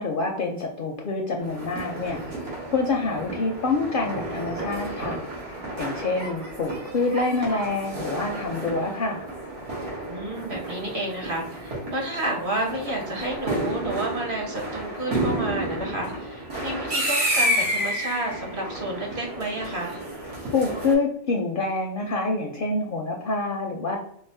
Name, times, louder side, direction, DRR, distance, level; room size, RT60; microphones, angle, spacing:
voice 1, 0.0-2.2 2.7-5.2 5.8-9.3 20.5-24.0, left 3 dB, 60° left, 1 dB, 0.6 m, -26 dB
sound 1, 1.4-20.9, right 1 dB, 75° right, 1.5 m, -31 dB
voice 2, 10.1-20.0, right 1 dB, 50° right, 0 dB, 1.0 m, -30 dB
4.7 x 2.0 x 2.5 m, 0.70 s
omnidirectional pair, 1.2 m